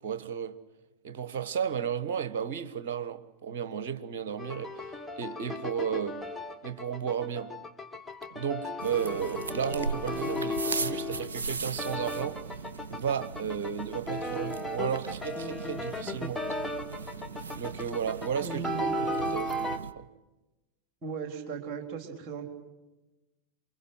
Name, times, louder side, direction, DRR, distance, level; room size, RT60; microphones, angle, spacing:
voice 1, 0.0-0.5 1.0-4.8 5.2-6.2 6.6-7.5 8.3-12.4 12.9-16.4 17.5-18.9 19.2-20.1, right 8 dB, 50° right, 1.3 m, -33 dB
sound 1, 4.4-19.8, left 1 dB, 5° left, 1.5 m, -35 dB
sound 2, 8.8-19.9, right 4 dB, 70° right, 0.8 m, -39 dB
voice 2, 18.4-19.6 21.0-22.5, right 5 dB, 35° right, 3.8 m, -38 dB
28.0 x 23.5 x 6.1 m
figure-of-eight pair, 90°, 0 cm